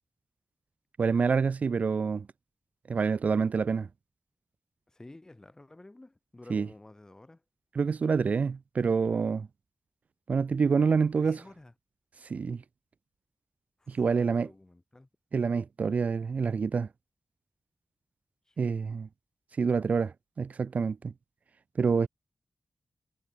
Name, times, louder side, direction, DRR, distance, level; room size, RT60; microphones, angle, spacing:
voice 1, 1.0-2.3 2.9-3.9 6.5-6.7 7.8-9.5 10.3-11.4 12.3-12.6 13.9-14.5 15.3-16.9 18.6-19.1 19.6-21.1 21.8-22.1, right 5 dB, 65° right, 0.8 m, -27 dB
voice 2, 4.9-7.4 11.2-11.7 13.8-15.1 18.5-18.8, left 2 dB, 25° left, 5.2 m, -52 dB
wide cardioid pair, 80°, 3 cm